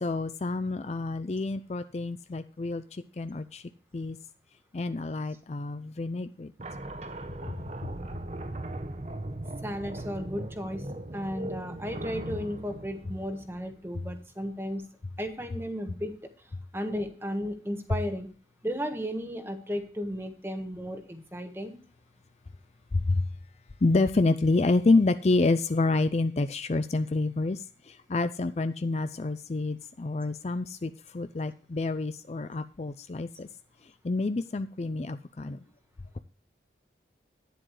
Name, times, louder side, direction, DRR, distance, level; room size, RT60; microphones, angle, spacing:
voice 1, 0.0-2.8 3.2-3.6 3.9-4.2 4.7-6.5 22.9-23.0 23.8-27.6 27.9-33.5 34.0-35.6, left 3 dB, 35° left, 12 dB, 0.4 m, -28 dB
sound 1, 6.6-14.0, right 1 dB, 35° right, 0.8 m, -39 dB
voice 2, 9.6-10.9 11.1-14.8 15.2-16.2 16.7-18.3 18.6-21.7, equal, 15° right, 6 dB, 1.3 m, -34 dB
11.5 x 10.0 x 3.2 m, 0.40 s
head